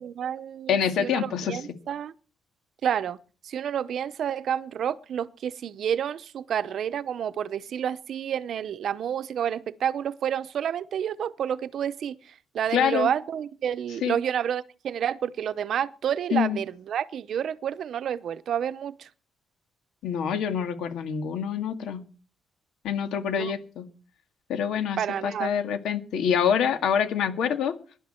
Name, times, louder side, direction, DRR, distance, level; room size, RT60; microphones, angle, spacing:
voice 1, 0.0-2.1 2.8-3.2 3.4-19.1 23.3-23.5 25.0-25.5, right 9 dB, 55° right, 0.7 m, -29 dB
voice 2, 0.7-1.6 12.7-13.1 14.0-14.1 16.3-16.6 20.0-22.0 22.8-23.9 24.5-27.7, left 8 dB, 85° left, 1.9 m, -26 dB
22.5 x 11.0 x 4.4 m
cardioid pair, 175°, 0 cm